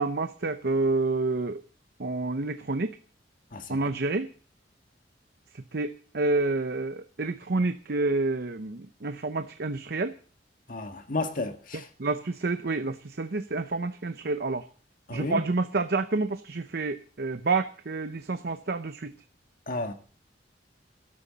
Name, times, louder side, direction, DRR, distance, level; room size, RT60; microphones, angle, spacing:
voice 1, 0.0-1.6 2.0-3.0 3.7-4.3 5.7-10.1 11.7-14.6 15.1-19.1, right 3 dB, 60° right, 0.8 m, -29 dB
voice 2, 10.7-11.9 15.1-15.4 19.7-19.9, left 2 dB, 50° left, 1.8 m, -32 dB
18.0 x 12.5 x 4.1 m
head